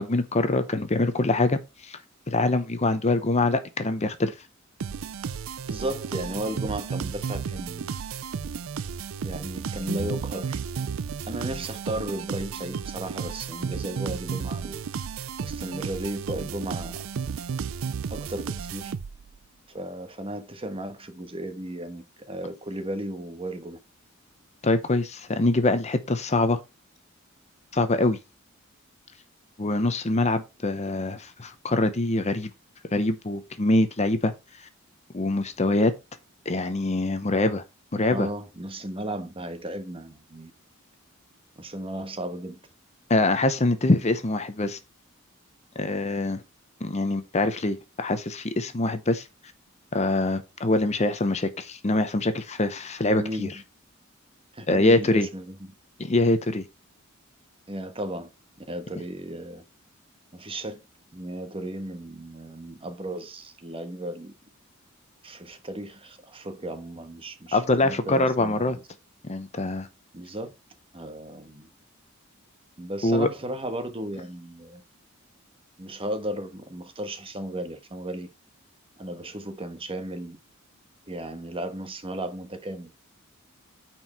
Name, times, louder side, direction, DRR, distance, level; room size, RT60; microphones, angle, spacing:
voice 1, 0.0-2.0 2.3-4.3 24.6-26.6 27.7-28.2 29.6-32.5 32.9-34.3 35.1-35.9 36.5-37.6 37.9-38.3 43.1-44.8 45.8-46.4 46.8-49.3 49.9-53.5 54.7-55.3 56.0-56.6 67.5-68.8 69.2-69.9 73.0-73.3, left 2 dB, 30° left, 0.8 m, -24 dB
sound 1, 4.8-19.4, right 6 dB, 70° right, 0.4 m, -33 dB
voice 2, 5.7-7.9 9.2-10.6 11.3-14.8 15.4-17.0 18.1-18.9 19.7-23.8 38.1-40.5 41.6-42.6 53.2-53.5 54.5-55.5 57.7-58.3 58.7-59.6 60.3-60.8 61.1-64.3 65.2-68.8 70.1-70.5 70.9-71.7 72.8-74.8 75.8-78.3 79.0-80.4 81.1-82.9, right 1 dB, 25° right, 1.2 m, -35 dB
9.4 x 4.6 x 4.3 m
head